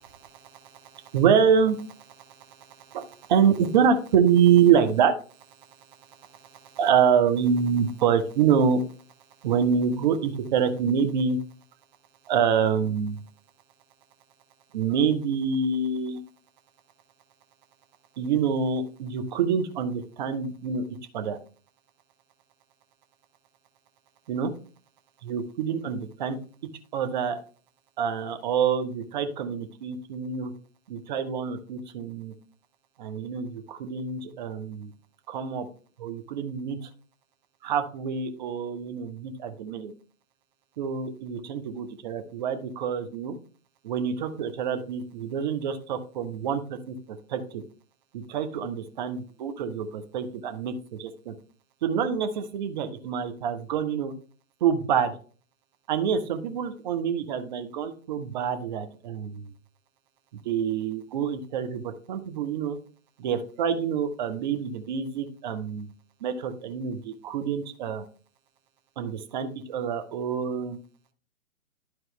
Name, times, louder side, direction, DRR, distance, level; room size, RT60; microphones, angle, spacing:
voice 1, 1.1-1.7 2.9-3.0 3.3-5.1 6.8-8.8 9.4-11.4 12.3-13.2 14.7-16.2 18.2-20.8 21.1-21.4 24.3-24.5 25.3-26.4 26.9-27.4 28.0-30.5 30.9-32.3 33.0-34.9 35.3-35.6 36.0-36.8 37.6-39.9 40.8-43.3 43.8-46.6 46.9-47.0 47.3-47.4 48.3-50.7 51.0-51.3 51.8-54.1 54.6-55.1 55.9-59.4 60.5-61.8 62.1-62.8 63.2-65.9 66.2-68.0 69.0-70.8, right 7 dB, 35° right, 8 dB, 0.9 m, -26 dB
11.5 x 4.6 x 3.2 m, 0.40 s
figure-of-eight pair, 125°, 41 cm